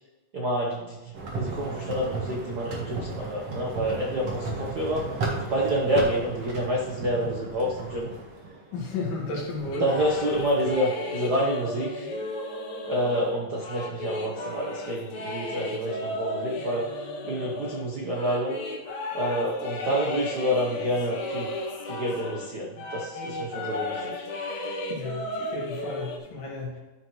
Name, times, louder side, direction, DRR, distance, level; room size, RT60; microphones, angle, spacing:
voice 1, 0.3-8.1 9.8-12.1 12.8-16.9 17.2-18.6 19.1-21.5 21.8-24.3, equal, 85° right, -2 dB, 0.8 m, -28 dB
sound 1, 1.1-10.7, right 3 dB, 50° right, 2.3 m, -35 dB
voice 2, 8.7-9.8 24.9-26.8, left 3 dB, 85° left, -2 dB, 3.6 m, -33 dB
sound 2, 9.7-22.5 22.8-26.2, left 2 dB, 65° left, 2.3 m, -34 dB
13.0 x 6.0 x 3.2 m, 1.2 s
omnidirectional pair, 3.7 m